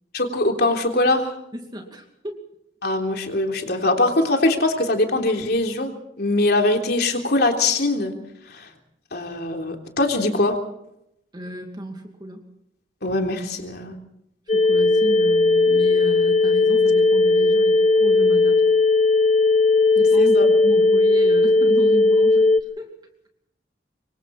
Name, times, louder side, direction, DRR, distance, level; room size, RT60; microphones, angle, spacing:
voice 1, 0.1-1.3 2.8-5.9 6.2-8.1 8.5-8.7 9.1-10.6 13.0-14.0 20.2-20.5, left 2 dB, 60° left, 2 dB, 3.5 m, -22 dB
voice 2, 1.5-2.5 11.3-12.5 14.5-18.7 19.9-22.9, equal, 25° right, 3 dB, 2.6 m, -33 dB
sound 1, 14.5-22.6, left 3 dB, 35° left, 1.0 m, -17 dB
26.0 x 23.5 x 4.3 m, 0.78 s
head